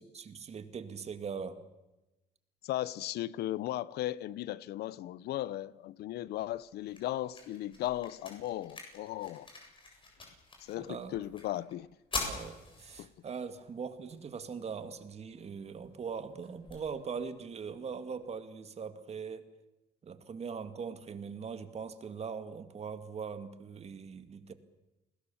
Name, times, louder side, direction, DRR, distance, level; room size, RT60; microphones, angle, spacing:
voice 1, 0.1-1.6 10.8-11.2 12.2-19.5 20.0-24.5, right 6 dB, 40° right, 2.1 m, -41 dB
voice 2, 2.6-9.5 10.6-11.9 13.0-13.1, left 14 dB, 75° left, 0.7 m, -36 dB
sound 1, 6.3-18.3, left 3 dB, 30° left, 7.6 m, -46 dB
29.5 x 20.0 x 7.1 m
cardioid pair, 110°, 17 cm